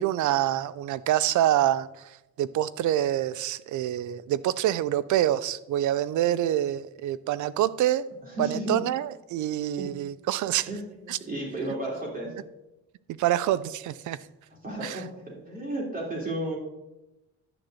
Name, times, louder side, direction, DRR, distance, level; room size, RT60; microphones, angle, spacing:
voice 1, 0.0-8.0 8.4-10.7 11.1-11.2 13.1-14.2 14.8-15.0, right 12 dB, 75° right, 16 dB, 0.6 m, -26 dB
voice 2, 8.2-8.8 9.8-9.9 10.5-12.3 14.6-16.6, right 1 dB, 30° right, -3 dB, 3.2 m, -33 dB
11.0 x 3.9 x 7.7 m, 0.95 s
cardioid pair, 90°, 30 cm